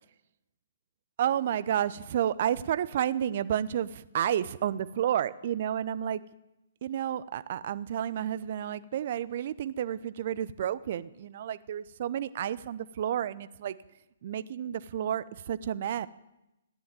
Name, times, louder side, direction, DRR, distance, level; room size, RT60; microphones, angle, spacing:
voice 1, 1.2-6.2 6.8-13.7 14.2-16.1, right 10 dB, 45° right, 16 dB, 0.7 m, -31 dB
15.5 x 10.5 x 9.0 m, 0.93 s
figure-of-eight pair, 130°, 0 cm